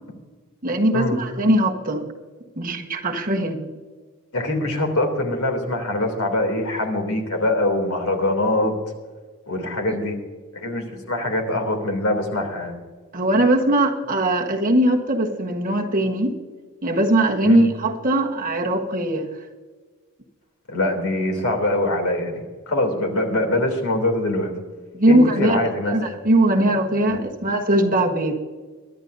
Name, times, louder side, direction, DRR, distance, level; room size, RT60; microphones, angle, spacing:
voice 1, 0.6-2.0 2.6-3.7 13.1-16.3 16.8-19.3 24.9-25.6 25.9-28.3, right 1 dB, 40° right, 2 dB, 1.4 m, -20 dB
voice 2, 4.3-8.7 9.5-10.1 10.5-12.8 17.4-17.7 20.7-24.5 25.0-26.1 27.1-27.2, left 1 dB, 70° left, 3 dB, 3.1 m, -23 dB
23.0 x 11.5 x 2.7 m, 1.4 s
head